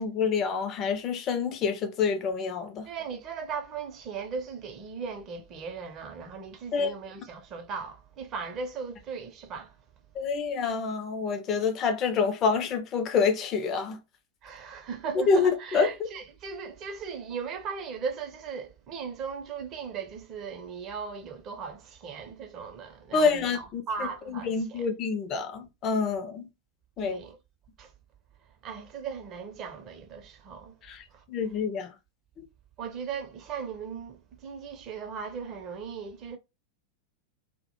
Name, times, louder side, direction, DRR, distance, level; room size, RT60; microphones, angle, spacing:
voice 1, 0.0-2.9 6.7-6.9 10.2-14.0 15.3-15.9 23.1-23.8 24.3-26.5 27.0-27.2 30.8-31.0 31.3-31.9, left 5 dB, 30° left, 0.4 m, -27 dB
voice 2, 2.9-9.8 14.4-24.9 27.0-27.4 27.8-27.9 28.6-30.8 31.1-31.2 32.8-36.4, right 5 dB, 35° right, 0.5 m, -38 dB
2.1 x 2.0 x 2.9 m
figure-of-eight pair, 90°, 0 cm